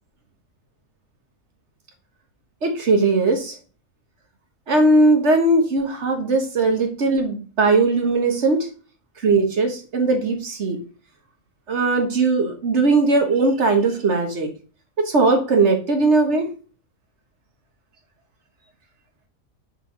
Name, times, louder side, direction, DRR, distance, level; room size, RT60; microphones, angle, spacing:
voice 1, 2.6-3.5 4.7-8.7 9.2-10.8 11.7-14.5 15.0-16.5, right 3 dB, 55° right, 4 dB, 1.6 m, -19 dB
6.6 x 4.1 x 4.6 m, 0.36 s
omnidirectional pair, 1.4 m